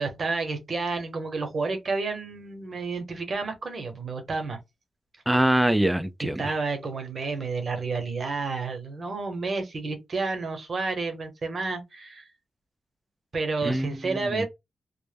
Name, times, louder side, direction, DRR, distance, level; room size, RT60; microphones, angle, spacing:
voice 1, 0.0-4.6 6.4-12.3 13.3-14.5, right 4 dB, 55° right, 0.8 m, -30 dB
voice 2, 5.3-6.5 13.6-14.4, right 1 dB, 5° right, 0.4 m, -24 dB
2.1 x 2.0 x 3.3 m
cardioid pair, 70°, 0 cm